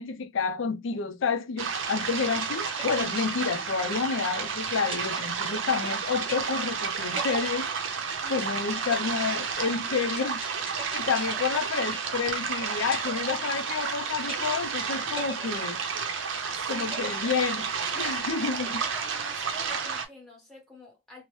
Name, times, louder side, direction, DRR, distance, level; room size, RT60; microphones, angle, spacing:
voice 1, 0.0-7.7 8.3-15.8 16.7-17.7 18.0-18.8, left 5 dB, 75° left, 0.5 m, -29 dB
sound 1, 1.6-20.1, right 6 dB, 75° right, 0.6 m, -31 dB
sound 2, 2.2-4.5 4.9-5.9 6.3-6.8 7.2-8.4 8.9-12.5 12.9-13.9 14.3-14.8 15.2-16.4 16.9-17.9, right 1 dB, 30° right, 0.8 m, -41 dB
voice 2, 8.2-8.7 11.3-11.5 16.5-16.9 17.9-21.2, right 1 dB, ahead, 1.2 m, -47 dB
3.0 x 2.0 x 3.0 m
head